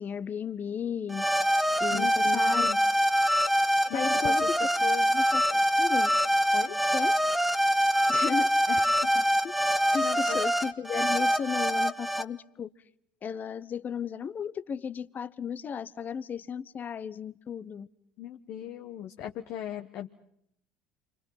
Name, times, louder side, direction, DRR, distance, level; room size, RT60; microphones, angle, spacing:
voice 1, 0.0-1.5 1.8-2.7 3.8-4.7 5.1-5.4 5.8-6.1 6.9-7.1 8.1-8.5 9.4-9.5 9.9-12.7 13.2-17.9, left 7 dB, 40° left, 1.0 m, -34 dB
sound 1, 1.1-12.2, equal, ahead, 1.2 m, -25 dB
voice 2, 1.9-2.8 3.9-5.1 6.5-6.8 8.7-9.2 10.0-10.4 18.2-20.1, left 11 dB, 60° left, 1.3 m, -38 dB
29.0 x 25.0 x 5.8 m
hypercardioid pair, 70°, 5 cm